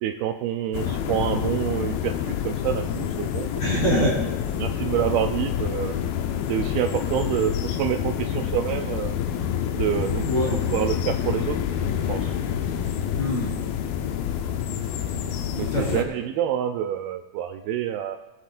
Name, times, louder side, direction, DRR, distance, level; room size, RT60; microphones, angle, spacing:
voice 1, 0.0-2.2 2.4-3.5 4.6-6.0 6.5-9.2 9.7-10.2 10.7-11.6 12.1-12.3 15.6-18.2, right 11 dB, 85° right, 6 dB, 2.1 m, -27 dB
sound 1, 0.7-16.0, left 9 dB, 85° left, 2.1 m, -27 dB
voice 2, 3.6-4.2 9.9-10.5 13.2-13.6 15.6-16.0, equal, 35° left, -5 dB, 2.8 m, -25 dB
24.0 x 8.4 x 2.5 m, 1.1 s
omnidirectional pair, 4.9 m